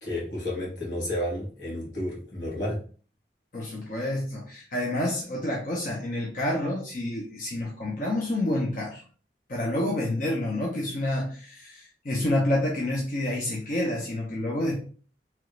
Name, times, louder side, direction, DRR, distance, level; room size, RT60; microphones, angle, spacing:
voice 1, 0.0-2.8, left 1 dB, 85° left, -5 dB, 1.6 m, -31 dB
voice 2, 3.5-9.0 9.5-14.7, left 1 dB, 50° left, -2 dB, 0.6 m, -28 dB
3.1 x 2.4 x 3.0 m, 0.40 s
head